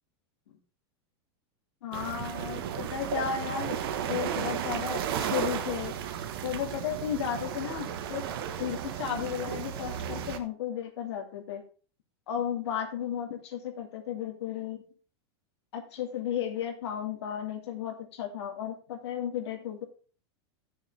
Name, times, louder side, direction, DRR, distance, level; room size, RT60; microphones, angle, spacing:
voice 1, 1.8-3.8 4.1-5.9 6.4-8.2 8.6-11.6 12.3-14.8 15.7-19.8, left 9 dB, 75° left, 3 dB, 2.7 m, -34 dB
sound 1, 1.9-10.4, right 9 dB, 55° right, 1.3 m, -34 dB
13.5 x 7.2 x 3.4 m, 0.37 s
supercardioid pair, 180°, 14 cm